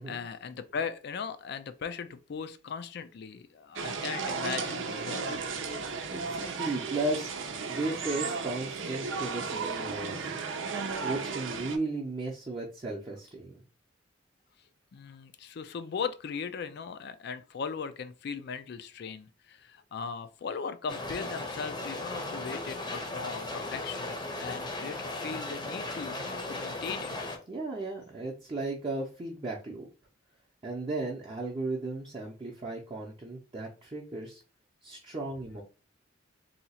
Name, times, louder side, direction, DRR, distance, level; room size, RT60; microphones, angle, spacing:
voice 1, 0.0-5.5 14.9-27.1, left 6 dB, 60° left, 0.4 m, -38 dB
sound 1, 3.7-11.8, right 4 dB, 85° right, 0.6 m, -34 dB
voice 2, 6.1-10.4 11.0-13.6 27.5-29.9 30.6-34.4 34.8-35.6, right 2 dB, 30° right, 0.6 m, -35 dB
sound 2, 20.9-27.4, left 2 dB, 25° left, 0.7 m, -37 dB
2.8 x 2.4 x 4.1 m
head